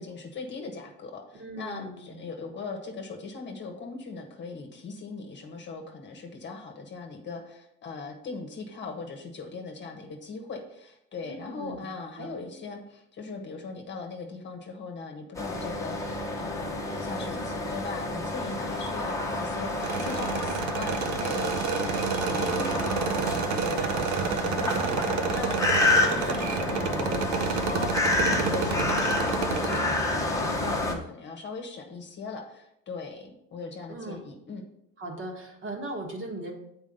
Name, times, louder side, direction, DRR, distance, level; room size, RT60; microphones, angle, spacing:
voice 1, 0.0-34.6, left 4 dB, 30° left, 3 dB, 1.3 m, -39 dB
voice 2, 1.4-2.1 11.2-11.8 12.2-12.3 28.2-29.0 33.9-34.2 35.0-36.5, right 2 dB, 35° right, 1 dB, 1.8 m, -38 dB
sound 1, 15.3-30.9, left 2 dB, 10° left, 1.1 m, -29 dB
sound 2, 19.8-29.8, right 7 dB, 55° right, 0.8 m, -30 dB
7.4 x 4.7 x 5.4 m, 0.80 s
supercardioid pair, 120°, 34 cm